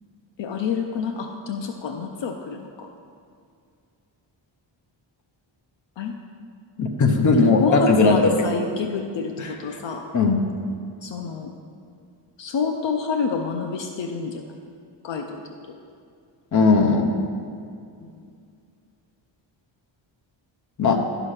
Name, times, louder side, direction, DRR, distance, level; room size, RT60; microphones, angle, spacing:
voice 1, 0.4-2.9 6.0-6.1 7.3-10.0 11.0-11.5 12.4-14.4 15.0-15.4 18.0-18.1, left 5 dB, 65° left, 4 dB, 0.7 m, -28 dB
voice 2, 6.8-8.3 9.4-9.5 10.1-10.4 16.5-17.1 20.8-21.0, left 3 dB, 40° left, 4 dB, 0.8 m, -18 dB
11.5 x 5.0 x 5.7 m, 2.3 s
wide cardioid pair, 170°, 47 cm